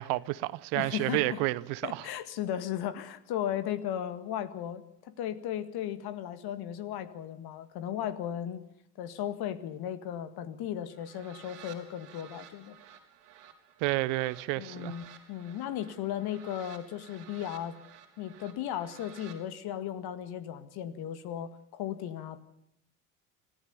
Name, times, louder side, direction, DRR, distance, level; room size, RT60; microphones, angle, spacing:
voice 1, 0.0-2.0 13.8-14.9, right 20 dB, 65° right, 1.0 m, -30 dB
voice 2, 0.7-1.4 1.8-8.6 9.0-12.8 14.6-17.8 18.2-22.4, left 10 dB, 55° left, 2.0 m, -36 dB
sound 1, 10.9-19.4, right 9 dB, 85° right, 4.0 m, -53 dB
26.0 x 15.5 x 6.9 m
hypercardioid pair, 70°, 46 cm